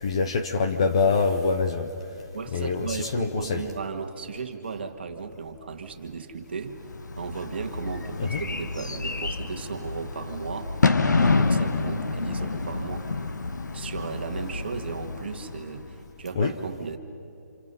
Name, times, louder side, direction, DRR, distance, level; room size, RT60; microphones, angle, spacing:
voice 1, 0.0-1.9 2.5-2.9 3.1-3.6 8.3-8.4 16.4-16.5, left 4 dB, 20° left, 7 dB, 0.6 m, -24 dB
voice 2, 2.3-6.8 7.2-10.8 11.1-13.1 13.7-17.0, right 5 dB, 35° right, 6 dB, 1.7 m, -35 dB
Bird / Fireworks, 6.8-16.0, left 3 dB, 85° left, 1.6 m, -28 dB
27.5 x 27.5 x 5.6 m, 2.8 s
hypercardioid pair, 180°, 9 cm